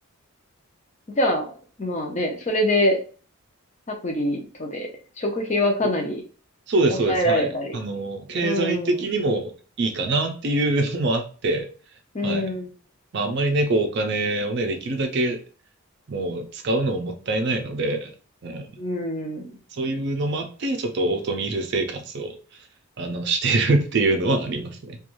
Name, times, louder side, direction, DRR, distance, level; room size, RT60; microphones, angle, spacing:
voice 1, 1.2-1.5 1.8-3.0 3.9-4.9 5.2-6.2 6.9-7.8 8.4-9.0 12.1-12.7 18.8-19.5, left 1 dB, 30° left, 2 dB, 0.5 m, -24 dB
voice 2, 6.7-9.5 9.8-11.7 12.2-12.5 13.1-15.4 16.1-18.1 18.4-18.7 19.7-22.3 23.0-25.0, right 2 dB, 50° right, 5 dB, 0.4 m, -24 dB
2.5 x 2.3 x 3.0 m, 0.39 s
head